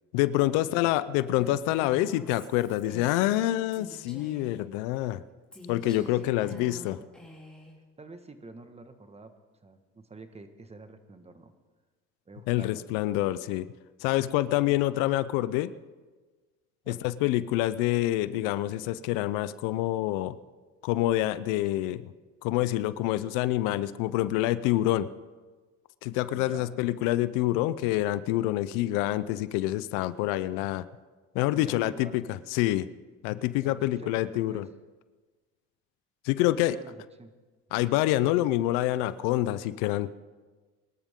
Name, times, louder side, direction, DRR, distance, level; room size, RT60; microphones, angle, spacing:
voice 1, 0.1-5.2 5.7-7.0 12.5-13.7 14.0-15.7 16.9-20.4 20.8-22.1 22.4-25.1 26.0-30.9 31.3-32.9 33.2-34.7 36.2-36.8 37.7-40.2, left 15 dB, 85° left, 15 dB, 0.6 m, -27 dB
Female speech woman speaking, 1.3-4.6 5.5-7.7, left 2 dB, 5° left, 3.4 m, -47 dB
voice 2, 5.8-7.0 8.0-9.3 9.6-11.5 12.3-13.1 14.7-14.8 16.8-17.0 26.3-26.9 31.5-32.2 33.6-34.6 36.4-37.3 37.7-37.9, right 3 dB, 20° right, 8 dB, 1.5 m, -47 dB
23.0 x 13.0 x 3.7 m, 1.3 s
supercardioid pair, 100°, 31 cm